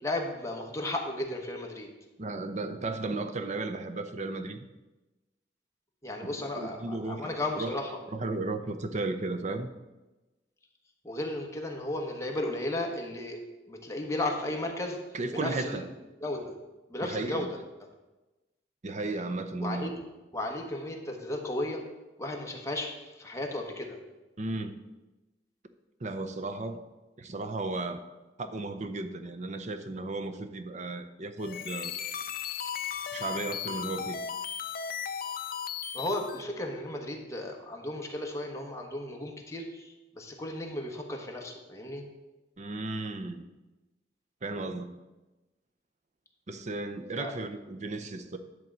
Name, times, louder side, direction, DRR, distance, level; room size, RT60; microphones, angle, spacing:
voice 1, 0.0-1.9 6.0-8.0 11.0-13.4 13.7-15.0 15.3-15.8 16.2-16.6 16.9-17.5 19.6-20.0 20.3-21.8 22.2-24.0 35.9-42.0 47.2-47.3, left 1 dB, 15° left, 1.2 m, -34 dB
voice 2, 2.2-4.6 6.6-7.2 7.6-7.7 8.1-9.7 15.1-15.8 17.0-17.5 18.8-19.9 24.4-24.7 26.0-26.8 27.2-28.0 28.4-31.9 33.1-34.2 42.6-43.4 44.4-44.9 46.5-48.4, right 2 dB, 40° right, 0.6 m, -34 dB
sound 1, 31.4-36.4, left 8 dB, 55° left, 0.5 m, -36 dB
10.5 x 3.8 x 7.3 m
head